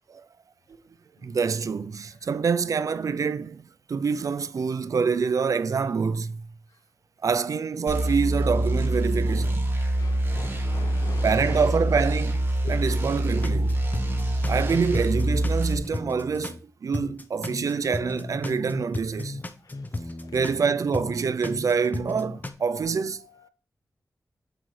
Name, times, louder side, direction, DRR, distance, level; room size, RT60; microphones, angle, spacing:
voice 1, 1.2-3.6 3.9-6.4 7.2-9.7 11.2-13.8 14.5-19.4 20.3-23.2, right 5 dB, 65° right, 0.4 m, -26 dB
sound 1, 7.9-15.8, right 1 dB, 40° right, 1.4 m, -25 dB
voice 2, 10.0-11.7 12.6-12.8 19.6-19.8 23.2-23.5, left 5 dB, 80° left, 0.7 m, -42 dB
sound 2, 13.4-16.6 16.9-20.6 20.9-22.5, left 2 dB, 30° left, 0.7 m, -34 dB
7.9 x 5.5 x 3.2 m
wide cardioid pair, 125°, 6 cm